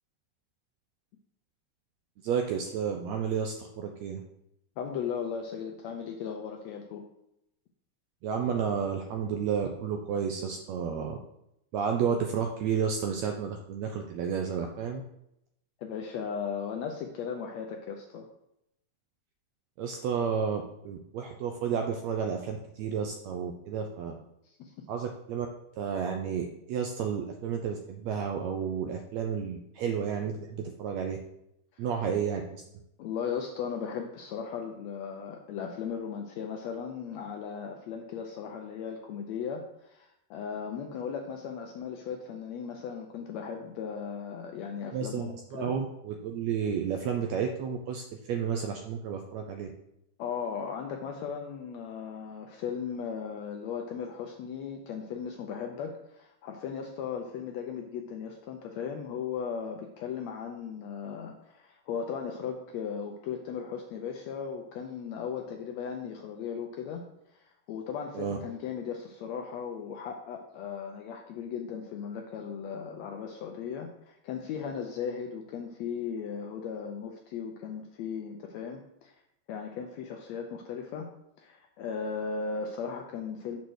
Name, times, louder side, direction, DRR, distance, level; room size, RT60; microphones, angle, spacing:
voice 1, 2.2-4.2 8.2-11.2 11.7-15.0 19.8-24.2 24.9-25.5 25.8-31.2 31.8-32.6 44.9-49.7 68.1-68.4, right 7 dB, 80° right, 3 dB, 1.6 m, -31 dB
voice 2, 4.8-7.0 15.8-18.3 24.4-24.7 31.8-31.9 33.0-45.7 50.2-67.0 67.3-79.1 79.5-81.1 81.4-83.6, left 6 dB, 80° left, 3 dB, 1.6 m, -37 dB
6.3 x 4.1 x 6.3 m, 0.81 s
omnidirectional pair, 3.7 m